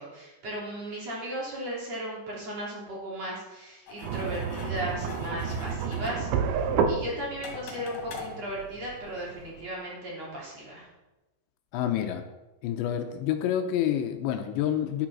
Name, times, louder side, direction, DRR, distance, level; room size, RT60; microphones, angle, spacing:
voice 1, 0.0-6.3 6.9-10.9, right 1 dB, 35° right, -4 dB, 4.1 m, -36 dB
sound 1, 3.9-9.4, left 4 dB, 55° left, 3.8 m, -44 dB
sound 2, 4.0-9.7, right 6 dB, 80° right, 3.3 m, -31 dB
voice 2, 11.7-12.2 12.6-15.1, left 10 dB, 80° left, 6 dB, 2.9 m, -28 dB
11.5 x 10.5 x 6.2 m, 1.0 s
omnidirectional pair, 5.3 m